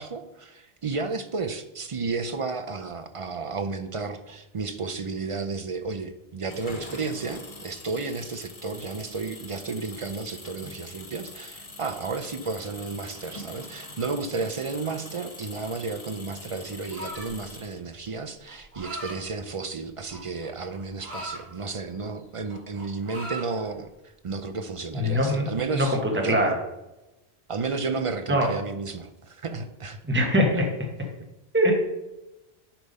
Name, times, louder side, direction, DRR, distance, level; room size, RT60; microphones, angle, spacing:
voice 1, 0.0-26.5 27.5-30.0, right 4 dB, 45° right, 8 dB, 0.4 m, -32 dB
Engine, 6.4-18.1, left 2 dB, 35° left, 1.1 m, -44 dB
sound 1, 16.9-17.4 18.5-19.2 20.1-21.4 21.9-22.2 22.4-23.5, right 1 dB, 70° right, 2.3 m, -38 dB
voice 2, 25.0-25.5 25.7-26.5 28.3-28.5 30.0-30.7 31.5-31.7, equal, 10° right, 1 dB, 1.2 m, -22 dB
10.0 x 3.5 x 5.3 m, 0.97 s
omnidirectional pair, 1.1 m